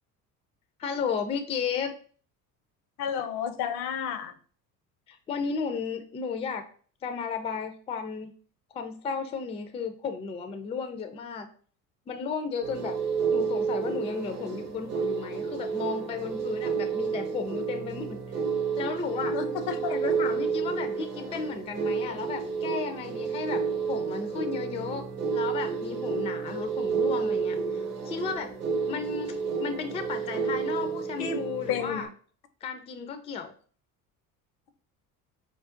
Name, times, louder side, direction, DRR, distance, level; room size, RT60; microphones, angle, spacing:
voice 1, 0.8-1.9 5.1-6.6 7.0-8.3 8.7-11.5 12.1-12.9 13.3-18.2 18.8-19.4 19.9-23.6 23.9-25.0 25.3-28.5 28.9-32.1 32.6-33.5, left 6 dB, 15° left, 7 dB, 0.3 m, -34 dB
voice 2, 3.0-4.4 19.3-20.0 31.2-31.4 31.7-32.1, left 7 dB, 70° left, 9 dB, 0.6 m, -31 dB
sound 1, 12.6-32.0, right 5 dB, 90° right, 0.8 m, -30 dB
5.0 x 2.0 x 2.5 m, 0.43 s
hypercardioid pair, 65°, 47 cm